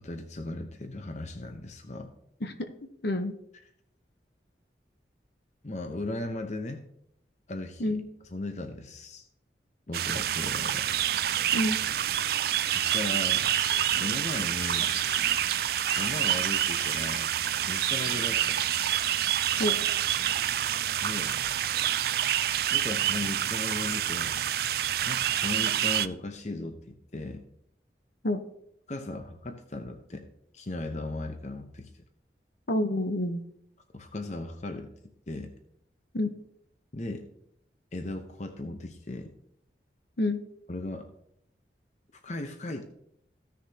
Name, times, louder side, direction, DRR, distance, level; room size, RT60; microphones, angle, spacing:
voice 1, 0.0-2.1 5.6-6.8 7.5-8.0 8.3-9.2 9.9-10.8 12.7-13.5 14.0-14.9 15.9-17.3 17.6-18.6 21.0-21.3 22.7-24.4 25.1-27.4 28.9-30.3 30.5-32.0 33.9-34.9 35.3-35.5 36.9-37.3 37.9-39.3 40.7-41.1 42.2-42.8, left 2 dB, 40° left, 5 dB, 0.8 m, -37 dB
voice 2, 3.0-3.3 7.8-8.0 11.5-11.8 19.6-19.8 28.2-28.4 32.7-33.4 36.1-36.3 40.2-40.4, left 1 dB, 65° left, 7 dB, 0.9 m, -28 dB
sound 1, 9.9-26.1, right 11 dB, 55° right, 0.4 m, -27 dB
Crying sobbing, 11.7-18.6 18.8-19.5, left 6 dB, 90° left, 0.7 m, -46 dB
15.5 x 6.5 x 2.9 m, 0.73 s
head